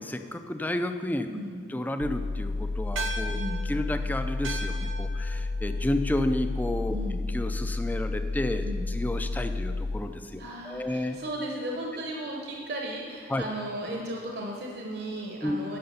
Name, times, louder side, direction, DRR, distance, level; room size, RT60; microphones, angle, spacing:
voice 1, 0.0-1.3 1.7-3.4 3.7-7.0 7.3-11.2 13.3-13.4 15.4-15.6, left 1 dB, 10° left, 8 dB, 0.4 m, -31 dB
voice 2, 1.3-1.6 3.3-3.6 6.9-7.2 8.6-8.8 10.4-15.8, right 1 dB, 55° right, -1 dB, 0.9 m, -35 dB
sound 1, 2.0-10.0, left 3 dB, 65° left, 0.5 m, -31 dB
sound 2, 3.0-7.6, right 2 dB, 80° right, 0.7 m, -40 dB
10.5 x 6.6 x 5.5 m, 2.4 s
head